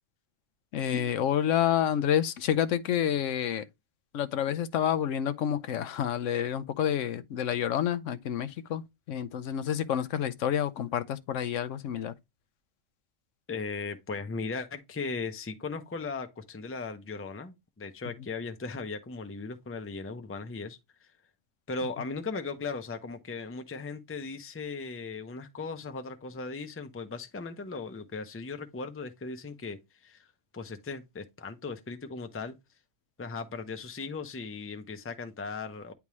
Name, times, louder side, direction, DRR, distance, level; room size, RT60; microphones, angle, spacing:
voice 1, 0.7-3.6 4.1-12.1, left 9 dB, 80° left, 1.0 m, -29 dB
voice 2, 13.5-21.1 21.7-32.6 33.2-35.9, left 4 dB, 15° left, 0.5 m, -38 dB
9.5 x 3.5 x 3.0 m
omnidirectional pair, 1.3 m